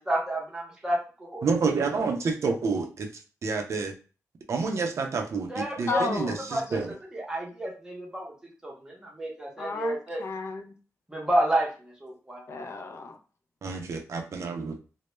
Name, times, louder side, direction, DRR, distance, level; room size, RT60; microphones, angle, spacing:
voice 1, 0.0-1.4 5.5-6.2 6.5-8.3 8.6-10.2 11.1-12.5, right 1 dB, 10° right, -2 dB, 0.7 m, -30 dB
voice 2, 1.4-3.1 3.4-3.9 4.5-6.9 13.6-14.8, right 4 dB, 60° right, 4 dB, 0.4 m, -29 dB
voice 3, 5.9-6.4 6.7-6.8 9.6-10.8 12.5-13.2, left 3 dB, 50° left, 5 dB, 0.3 m, -33 dB
2.1 x 2.0 x 3.0 m, 0.35 s
wide cardioid pair, 160°, 6 cm